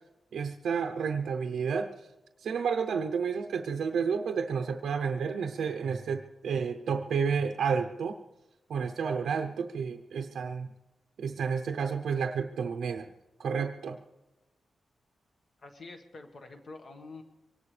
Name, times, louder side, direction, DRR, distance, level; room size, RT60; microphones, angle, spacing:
voice 1, 0.3-1.9 2.4-8.2 8.7-10.7 11.2-13.1 13.4-14.0, right 6 dB, 85° right, 5 dB, 0.7 m, -31 dB
voice 2, 15.6-17.2, left 3 dB, 45° left, 5 dB, 1.5 m, -46 dB
23.5 x 18.0 x 3.3 m, 1.1 s
wide cardioid pair, 155°, 0 cm